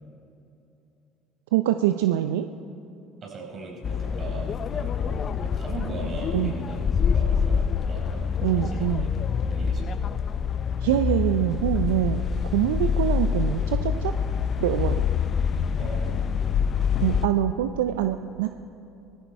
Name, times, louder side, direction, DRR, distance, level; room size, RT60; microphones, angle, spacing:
voice 1, 1.5-2.5 6.3-6.5 8.4-9.1 10.8-12.2 12.5-14.1 14.6-15.0 17.0-18.5, right 12 dB, 80° right, 8 dB, 0.4 m, -24 dB
voice 2, 3.2-9.1 9.5-9.9 15.8-16.4, right 3 dB, 45° right, -2 dB, 4.7 m, -39 dB
sound 1, 3.8-17.3, left 6 dB, 45° left, 0.6 m, -26 dB
18.0 x 14.5 x 4.6 m, 2.8 s
hypercardioid pair, 65°, 0 cm